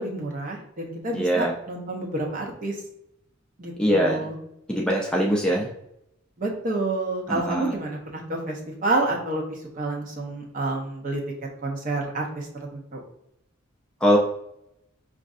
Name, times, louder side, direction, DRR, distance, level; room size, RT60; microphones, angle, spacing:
voice 1, 0.0-2.8 3.6-4.3 6.4-11.2 11.6-13.0, right 2 dB, 40° right, -1 dB, 0.8 m, -29 dB
voice 2, 1.1-1.5 3.8-4.3 4.7-5.7 7.3-7.8 14.0-14.2, equal, 5° left, -2 dB, 0.4 m, -22 dB
5.1 x 2.5 x 2.4 m, 0.78 s
head